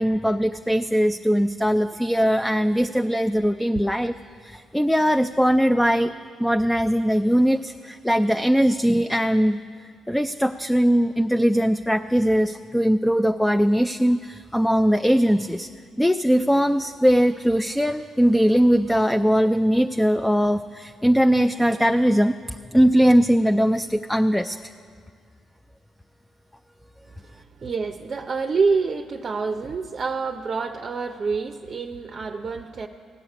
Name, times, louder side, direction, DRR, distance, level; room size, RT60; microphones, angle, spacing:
voice 1, 0.0-4.1 4.4-6.1 6.4-9.6 10.1-15.7 16.0-24.6, equal, 5° left, 8 dB, 0.3 m, -20 dB
voice 2, 27.1-32.9, right 4 dB, 40° right, 5 dB, 0.6 m, -27 dB
16.0 x 6.4 x 10.0 m, 2.1 s
cardioid pair, 90°, 0 cm